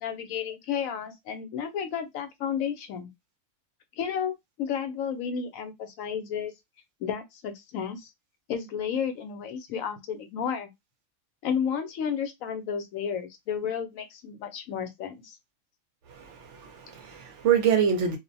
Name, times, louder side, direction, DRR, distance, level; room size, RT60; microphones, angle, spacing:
voice 1, 0.0-3.1 4.0-6.5 7.0-8.1 8.5-10.7 11.4-15.4, left 7 dB, 75° left, 1.0 m, -32 dB
voice 2, 16.1-18.2, right 8 dB, 65° right, 0.8 m, -25 dB
2.5 x 2.0 x 2.6 m
omnidirectional pair, 1.5 m